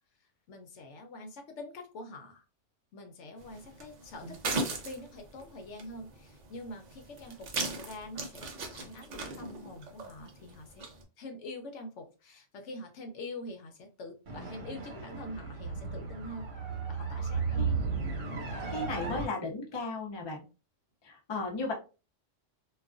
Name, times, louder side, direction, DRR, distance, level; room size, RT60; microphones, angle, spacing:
voice 1, 0.5-2.4 2.9-10.9 11.2-17.7 18.5-18.7, left 1 dB, 75° left, 4 dB, 0.9 m, -45 dB
sound 1, 3.4-11.0, right 3 dB, 55° right, 0.4 m, -39 dB
sound 2, 14.3-19.3, right 4 dB, 85° right, 1.1 m, -34 dB
voice 2, 18.7-20.4 21.0-21.7, left 3 dB, 35° left, 0 dB, 0.5 m, -35 dB
2.3 x 2.3 x 2.4 m, 0.32 s
omnidirectional pair, 1.3 m